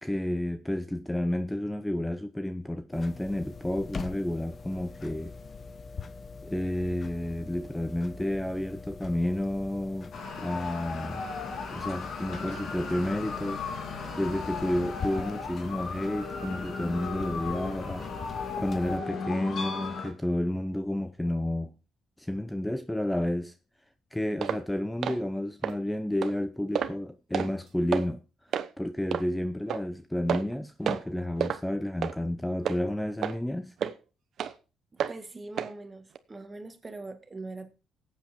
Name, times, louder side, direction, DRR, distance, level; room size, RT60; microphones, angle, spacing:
voice 1, 0.0-5.3 6.4-11.3 11.7-13.6 14.2-18.1 18.6-21.7 22.2-23.5 24.1-28.2 28.8-33.7, left 1 dB, 5° left, 0.7 m, -31 dB
sound 1, 2.9-19.0, left 4 dB, 40° left, 1.0 m, -43 dB
sound 2, 10.1-20.1, left 4 dB, 65° left, 2.8 m, -36 dB
sound 3, 24.4-24.6 25.0-25.2 25.6-25.7 26.2-26.3 26.7-27.0 27.3-27.5 27.9-28.1 28.5-28.7 29.1-29.2 29.7-29.8 30.3-30.5 30.9-31.1 31.4-31.6 32.0-32.2 32.7-32.8 33.2-33.4 33.8-33.9 34.4-34.5 35.0-35.2 35.6-35.7 36.2-36.3, right 8 dB, 65° right, 0.9 m, -30 dB
voice 2, 34.9-37.7, right 3 dB, 25° right, 1.8 m, -42 dB
14.5 x 8.2 x 4.5 m
cardioid pair, 90°, 0 cm